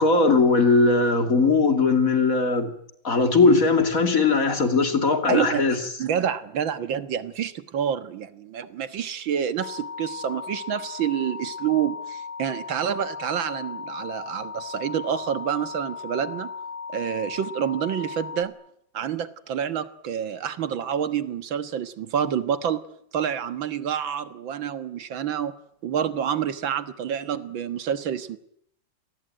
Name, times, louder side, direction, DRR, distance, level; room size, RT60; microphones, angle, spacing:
voice 1, 0.0-2.7 3.0-5.8, left 3 dB, 45° left, 6 dB, 3.2 m, -19 dB
voice 2, 5.3-5.6 6.0-16.5 16.9-18.5 18.9-22.8 23.1-25.6 25.8-28.4, right 8 dB, 85° right, 11 dB, 2.1 m, -28 dB
sound 1, 9.6-18.4, left 5 dB, 90° left, 3.8 m, -37 dB
28.0 x 19.5 x 9.1 m, 0.73 s
omnidirectional pair, 2.1 m